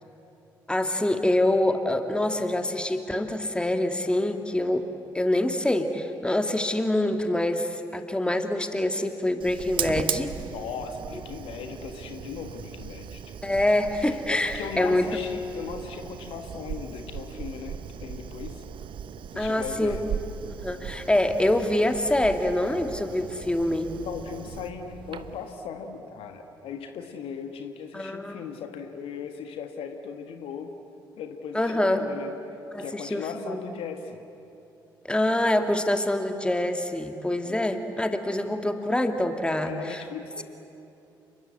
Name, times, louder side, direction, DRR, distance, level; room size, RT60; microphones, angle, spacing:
voice 1, 0.7-4.8 5.1-10.4 13.4-15.1 19.4-20.0 20.6-23.9 27.9-28.4 31.5-32.0 32.7-33.6 35.0-40.0, left 1 dB, 10° left, 6 dB, 2.2 m, -25 dB
Fire, 9.4-25.5, right 8 dB, 50° right, 1.0 m, -38 dB
voice 2, 10.5-13.4 14.0-18.6 19.3-20.0 24.0-30.7 31.2-32.3 32.8-34.2 37.4-37.6 39.6-40.4, left 6 dB, 60° left, 6 dB, 1.6 m, -38 dB
30.0 x 22.0 x 8.5 m, 2.8 s
figure-of-eight pair, 40°, 11 cm